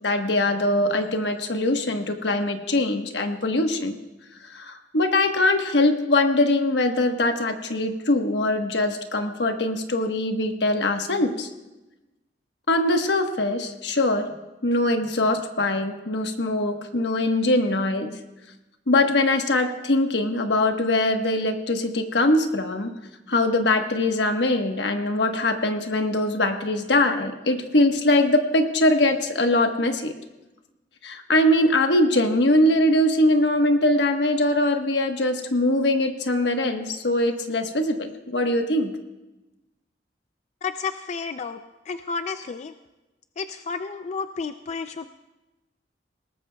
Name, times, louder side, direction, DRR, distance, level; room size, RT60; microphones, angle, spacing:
voice 1, 0.0-3.9 4.5-11.5 12.7-14.3 14.6-18.1 18.9-22.9 23.3-30.1 31.0-38.9, left 1 dB, 75° left, 5 dB, 1.2 m, -22 dB
voice 2, 40.6-41.6 41.9-42.7 43.4-45.1, left 5 dB, 40° left, 9 dB, 0.4 m, -31 dB
21.5 x 18.5 x 2.3 m, 1.0 s
head